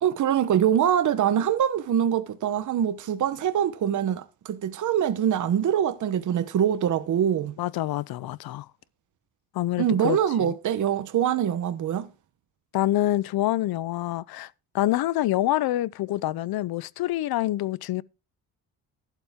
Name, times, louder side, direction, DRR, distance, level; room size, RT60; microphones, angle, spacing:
voice 1, 0.0-7.5 9.8-12.1, right 9 dB, 55° right, 1.0 m, -24 dB
voice 2, 7.6-8.7 9.5-10.5 12.7-18.0, left 14 dB, 80° left, 0.7 m, -26 dB
11.5 x 11.5 x 3.6 m
cardioid pair, 135°, 36 cm